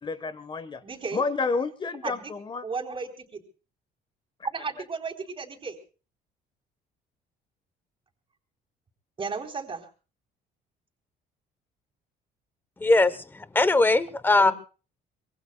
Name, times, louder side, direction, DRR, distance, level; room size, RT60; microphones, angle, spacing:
voice 1, 0.0-0.8 1.1-2.6, left 4 dB, 30° left, 13 dB, 1.3 m, -30 dB
voice 2, 0.8-1.2 2.0-2.3 2.6-3.4 4.5-5.8 9.2-9.9 14.4-14.5, right 5 dB, 30° right, 3 dB, 3.8 m, -34 dB
voice 3, 12.8-14.5, left 2 dB, 10° left, 15 dB, 0.9 m, -21 dB
25.0 x 22.5 x 2.3 m, 0.36 s
cardioid pair, 110°, 17 cm